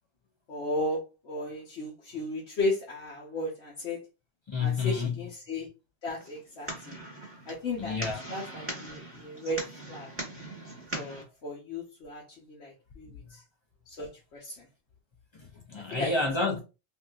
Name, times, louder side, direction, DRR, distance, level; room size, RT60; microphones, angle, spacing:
voice 1, 0.5-4.0 4.6-5.7 6.0-6.9 7.5-8.0 8.3-9.6 9.9-10.1 10.9-13.4 13.9-14.6 15.9-16.1, left 1 dB, 90° left, 1.2 m, -35 dB
voice 2, 4.5-5.1 7.8-8.2 15.3-16.6, left 4 dB, 50° left, 0.3 m, -29 dB
sound 1, 6.2-11.2, right 1 dB, 15° right, 1.1 m, -40 dB
3.5 x 2.6 x 2.3 m
omnidirectional pair, 1.1 m